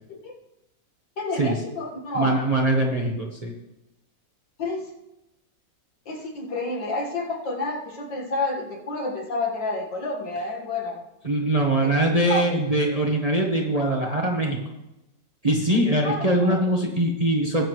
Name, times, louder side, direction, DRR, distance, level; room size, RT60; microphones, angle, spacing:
voice 1, 1.2-2.4 4.6-4.9 6.1-11.0 11.8-12.5 16.0-16.6, left 2 dB, 70° left, -1 dB, 2.4 m, -29 dB
voice 2, 2.1-3.5 11.2-14.6 15.4-17.7, right 1 dB, 25° right, -1 dB, 1.1 m, -22 dB
19.5 x 7.2 x 3.2 m, 0.95 s
omnidirectional pair, 2.0 m